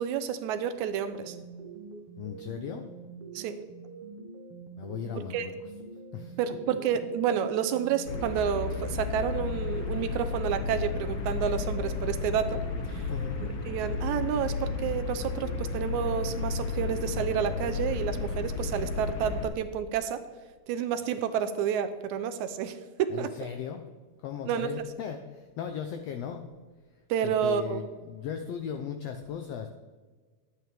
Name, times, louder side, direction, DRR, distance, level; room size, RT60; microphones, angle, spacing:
voice 1, 0.0-1.4 3.3-3.6 5.3-5.5 6.4-12.6 12.9-13.1 13.4-20.2 20.7-23.3 24.5-24.7 27.1-27.8, right 8 dB, 80° right, 10 dB, 1.9 m, -30 dB
sound 1, 1.0-18.4, right 4 dB, 60° right, 1.7 m, -46 dB
voice 2, 2.2-2.9 4.8-5.5 6.1-6.4 13.1-13.4 23.1-23.8 24.2-26.5 27.2-29.7, left 8 dB, 80° left, 6 dB, 1.4 m, -37 dB
sound 2, 8.1-19.5, left 4 dB, 60° left, 1.8 m, -33 dB
11.5 x 9.2 x 3.4 m, 1.4 s
omnidirectional pair, 3.5 m